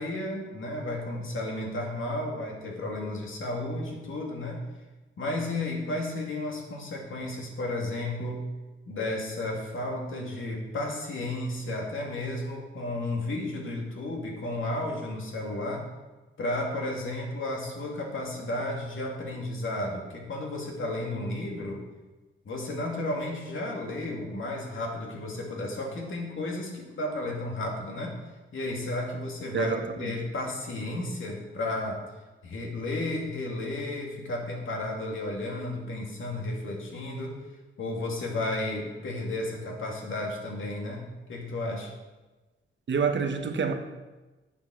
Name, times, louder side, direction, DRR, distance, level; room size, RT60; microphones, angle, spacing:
voice 1, 0.0-4.6 5.2-8.4 8.9-15.8 16.4-21.8 22.4-28.2 28.5-32.0 32.4-37.4 37.8-41.9, left 2 dB, 75° left, -1 dB, 2.4 m, -33 dB
voice 2, 29.5-30.1 42.9-43.7, right 6 dB, 65° right, 6 dB, 1.1 m, -27 dB
8.6 x 7.8 x 6.4 m, 1.2 s
wide cardioid pair, 100°, 21 cm